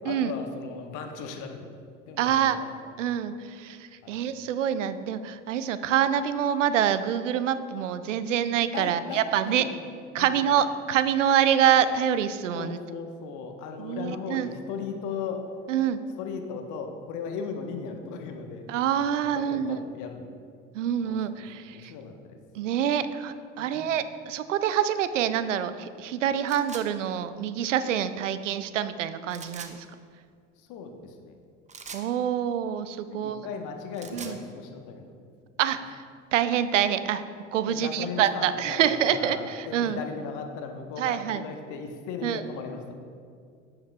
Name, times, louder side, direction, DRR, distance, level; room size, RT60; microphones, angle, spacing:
voice 1, 0.0-1.7 2.1-2.9 4.0-4.2 8.7-9.7 10.2-10.4 12.5-15.5 16.2-18.7 19.3-20.3 21.0-21.2 21.6-22.4 23.6-23.8 30.6-31.3 33.1-35.1 37.7-42.9, left 5 dB, 55° left, 4 dB, 1.1 m, -37 dB
voice 2, 2.2-2.6 3.0-9.6 10.1-12.8 13.8-14.5 15.7-16.0 18.7-19.8 20.7-21.9 22.5-29.9 31.9-33.4 34.1-34.4 35.6-36.0 36.3-37.2 37.5-40.0 41.0-41.4 42.2-42.4, right 9 dB, 80° right, 13 dB, 0.5 m, -26 dB
sound 1, 26.5-26.9 29.3-29.7 31.7-32.1 33.8-34.4, right 5 dB, 20° right, 0.7 m, -41 dB
15.5 x 5.8 x 2.3 m, 2.2 s
figure-of-eight pair, 65°, 37 cm